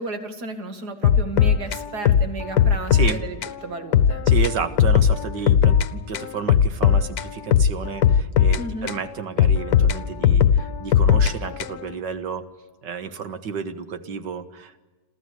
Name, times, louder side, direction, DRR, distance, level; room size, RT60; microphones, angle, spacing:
voice 1, 0.0-3.4 3.6-4.2 8.6-8.9, right 2 dB, 65° right, 6 dB, 2.8 m, -33 dB
sound 1, 1.0-3.2 3.4-3.6 3.9-5.9 6.1-9.0 9.4-11.9, left 8 dB, 65° left, 1.4 m, -18 dB
voice 2, 2.9-3.2 4.3-12.5 12.8-14.8, right 6 dB, 90° right, 10 dB, 2.1 m, -31 dB
28.5 x 14.0 x 9.7 m, 1.2 s
omnidirectional pair, 1.8 m